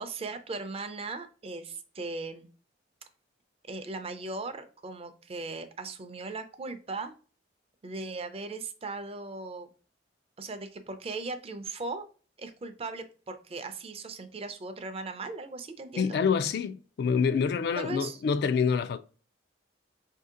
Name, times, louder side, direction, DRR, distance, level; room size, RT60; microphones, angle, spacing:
voice 1, 0.0-2.5 3.7-7.1 7.8-9.7 10.4-12.1 12.4-16.2 17.8-18.2, right 3 dB, 35° right, 0.5 m, -38 dB
voice 2, 16.0-19.0, left 6 dB, 60° left, 0.3 m, -27 dB
4.1 x 2.7 x 3.7 m
head